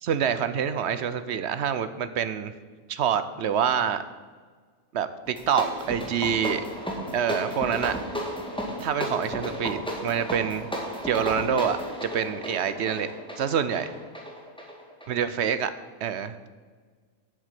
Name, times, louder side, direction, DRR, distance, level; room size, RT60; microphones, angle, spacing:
voice 1, 0.0-2.5 2.9-4.0 4.9-6.6 7.1-8.0 8.8-10.7 11.0-11.8 12.1-13.1 13.4-13.9 15.1-15.7 16.0-16.4, right 8 dB, 60° right, 12 dB, 0.8 m, -26 dB
sound 1, 5.2-15.6, equal, 5° left, 1.8 m, -34 dB
7.9 x 7.5 x 8.2 m, 1.5 s
omnidirectional pair, 1.5 m